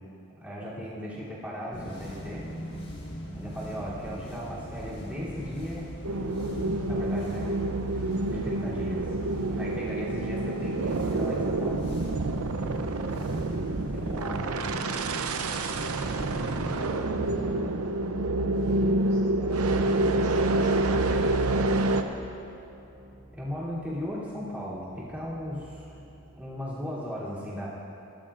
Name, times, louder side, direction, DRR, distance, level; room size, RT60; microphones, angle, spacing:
voice 1, 0.4-2.5 3.3-6.4 6.9-7.6 8.3-9.1 9.6-11.9 13.7-14.6 16.3-16.6 23.3-25.9 26.4-27.7, equal, 5° right, -10 dB, 3.2 m, -37 dB
voice 2, 1.0-1.4 3.2-3.6 14.0-14.7 15.2-15.9 16.4-17.9 19.1-22.4 25.8-26.1 26.6-26.7, equal, 10° left, -5 dB, 0.9 m, -47 dB
sound 1, 1.7-14.9, equal, 50° left, 1.5 m, -41 dB
sound 2, 6.0-22.0, right 2 dB, 80° right, 0.6 m, -27 dB
sound 3, 13.9-27.0, equal, 30° right, 2.0 m, -49 dB
19.5 x 11.5 x 2.6 m, 2.7 s
head